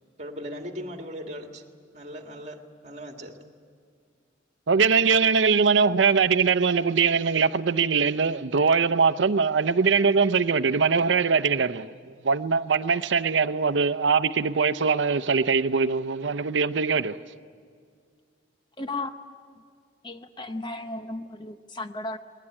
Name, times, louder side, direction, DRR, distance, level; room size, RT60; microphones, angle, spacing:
voice 1, 0.2-1.7 1.9-3.4, equal, 40° right, 2.0 m, -38 dB
voice 2, 4.7-17.2, right 5 dB, 85° right, 0.6 m, -22 dB
voice 3, 18.8-19.1 20.0-22.2, left 2 dB, 25° left, 0.8 m, -34 dB
20.5 x 20.0 x 9.8 m
head